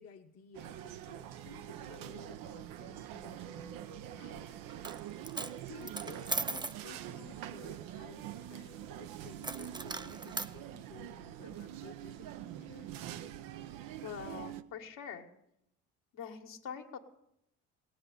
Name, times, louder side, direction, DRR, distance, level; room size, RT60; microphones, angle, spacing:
voice 1, 0.0-4.7 5.3-13.0, left 6 dB, 45° left, 1 dB, 1.2 m, -55 dB
sound 1, 0.5-14.6, right 11 dB, 75° right, 0.8 m, -45 dB
Coin (dropping), 4.7-5.0 5.2-6.8 9.4-10.5, right 3 dB, 15° right, 0.6 m, -38 dB
voice 2, 14.0-15.3 16.1-17.0, left 7 dB, 70° left, 2 dB, 1.8 m, -44 dB
17.5 x 7.7 x 9.3 m, 0.80 s
supercardioid pair, 70°, 34 cm